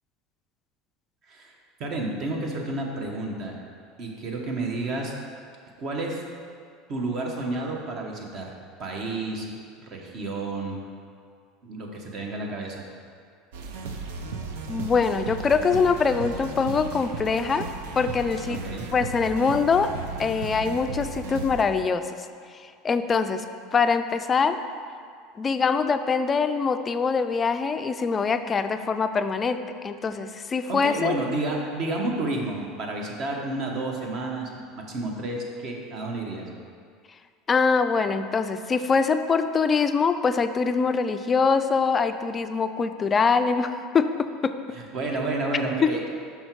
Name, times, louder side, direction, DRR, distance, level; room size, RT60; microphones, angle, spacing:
voice 1, 1.3-3.6 4.0-5.2 5.8-6.2 6.9-9.5 9.8-10.8 11.6-12.8 18.5-18.9 30.7-36.5 44.7-46.0, right 2 dB, 50° right, 0 dB, 1.1 m, -31 dB
sound 1, 13.5-21.6, right 4 dB, 90° right, 0.6 m, -35 dB
voice 2, 14.7-17.7 18.0-18.6 18.9-19.9 20.2-22.1 22.5-23.4 23.7-24.6 25.4-31.1 37.5-44.6 45.8-45.9, left 5 dB, 25° left, 9 dB, 0.3 m, -23 dB
5.8 x 5.4 x 4.5 m, 2.2 s
supercardioid pair, 125°, 0 cm